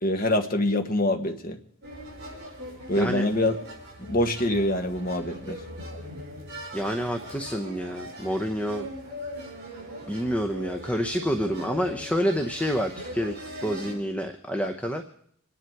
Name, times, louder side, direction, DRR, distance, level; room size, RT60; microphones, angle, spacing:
voice 1, 0.0-1.6 2.9-3.6 4.0-5.6, left 1 dB, 40° left, 5 dB, 1.4 m, -25 dB
sound 1, 1.8-14.0, equal, 50° right, 6.1 m, -40 dB
voice 2, 6.7-8.9 10.1-15.1, equal, 5° left, 5 dB, 0.8 m, -28 dB
26.0 x 10.5 x 4.7 m, 0.65 s
head